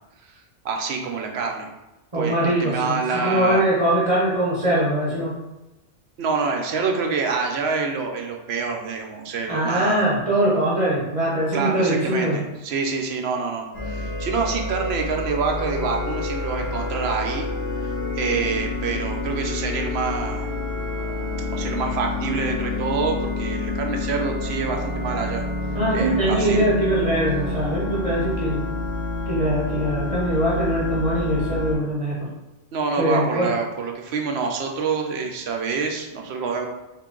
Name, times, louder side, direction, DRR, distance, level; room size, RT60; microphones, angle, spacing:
voice 1, 0.2-1.7 2.1-3.7 6.2-10.0 11.5-17.5 17.8-20.5 21.5-25.4 25.9-26.7 32.7-36.7, right 5 dB, 70° right, 2 dB, 0.8 m, -26 dB
voice 2, 2.1-5.3 9.5-12.4 25.7-28.6 29.3-32.1 33.0-33.5, right 1 dB, 35° right, -8 dB, 0.9 m, -22 dB
sound 1, 13.7-31.7, left 2 dB, 65° left, 1.6 m, -28 dB
3.7 x 2.7 x 3.7 m, 1.0 s
omnidirectional pair, 1.2 m